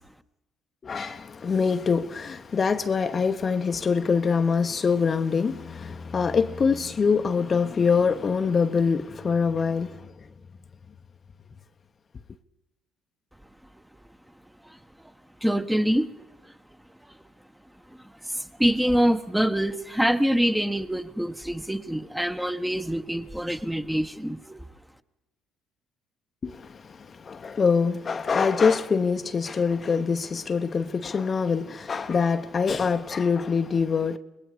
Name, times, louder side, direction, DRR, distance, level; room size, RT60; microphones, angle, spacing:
voice 1, 0.8-10.0 26.4-26.7 27.2-34.2, left 5 dB, 40° left, 1.0 m, -24 dB
voice 2, 15.4-16.1 16.4-16.5 17.0-17.1 18.2-24.6, equal, 5° right, 1.3 m, -25 dB
26.0 x 20.0 x 5.0 m
supercardioid pair, 65°, 0 cm